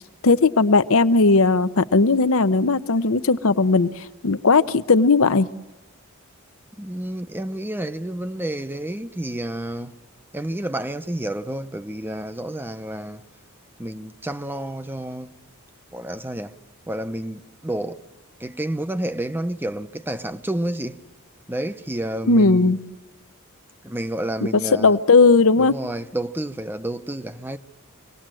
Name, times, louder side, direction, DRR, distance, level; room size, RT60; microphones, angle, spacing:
voice 1, 0.2-5.5 22.3-22.8 24.8-25.8, left 3 dB, 65° left, 0.8 m, -17 dB
voice 2, 6.8-9.9 10.3-13.2 13.8-15.3 15.9-16.6 16.9-18.0 18.4-21.0 21.5-22.7 23.8-25.0 25.6-27.6, right 1 dB, 10° right, 0.7 m, -30 dB
25.5 x 19.0 x 7.6 m
head